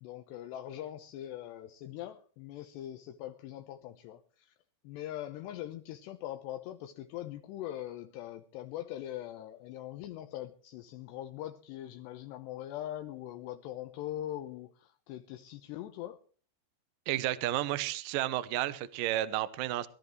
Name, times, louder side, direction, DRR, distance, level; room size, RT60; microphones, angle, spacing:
voice 1, 0.0-4.5 4.8-16.2, left 13 dB, 80° left, 2.9 m, -42 dB
voice 2, 17.1-19.9, right 14 dB, 85° right, 1.9 m, -32 dB
22.5 x 13.5 x 3.1 m
omnidirectional pair, 5.3 m